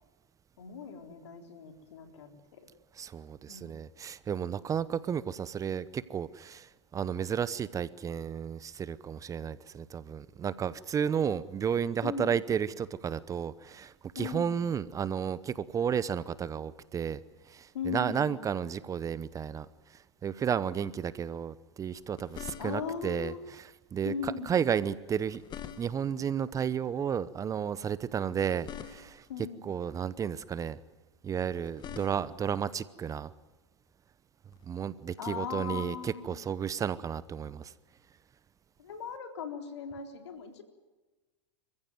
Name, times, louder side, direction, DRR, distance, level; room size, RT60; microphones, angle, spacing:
voice 1, 0.6-2.7 3.5-3.7 12.0-12.3 14.2-14.6 17.7-18.3 22.6-23.4 24.0-24.6 29.3-29.6 35.2-36.5 38.8-40.6, left 6 dB, 75° left, 5 dB, 3.9 m, -38 dB
voice 2, 3.0-17.2 17.5-25.4 25.8-29.3 29.6-30.8 31.2-33.3 34.6-37.7, right 7 dB, 20° right, 17 dB, 0.8 m, -33 dB
sound 1, 21.9-23.1 25.0-26.2 28.2-29.4 31.4-32.5 34.5-34.7, left 9 dB, 30° left, 1.4 m, -46 dB
27.0 x 15.5 x 9.3 m, 1.2 s
hypercardioid pair, 105°, 15 cm